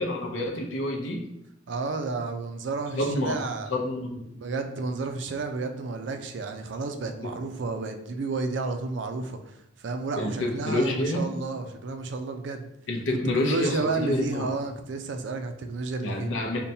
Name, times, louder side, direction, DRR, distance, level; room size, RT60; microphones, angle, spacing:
voice 1, 0.0-1.3 3.0-3.4 3.7-4.2 7.2-7.3 10.2-11.3 12.9-14.5 16.0-16.6, left 1 dB, 75° left, 2 dB, 0.6 m, -28 dB
voice 2, 1.7-3.7 4.3-12.7 13.4-16.3, right 3 dB, 65° right, 6 dB, 0.4 m, -31 dB
5.4 x 2.2 x 2.7 m, 0.82 s
head